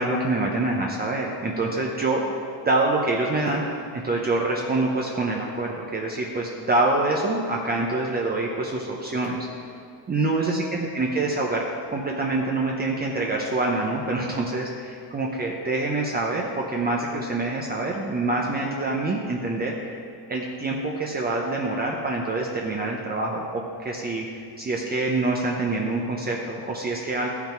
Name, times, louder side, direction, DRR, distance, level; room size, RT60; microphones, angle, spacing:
voice 1, 0.0-2.4 2.6-3.6 3.9-9.5 10.1-11.6 11.9-20.0 20.3-27.3, right 2 dB, 20° right, -2 dB, 0.9 m, -26 dB
13.5 x 5.9 x 4.5 m, 2.4 s
cardioid pair, 120°, 45 cm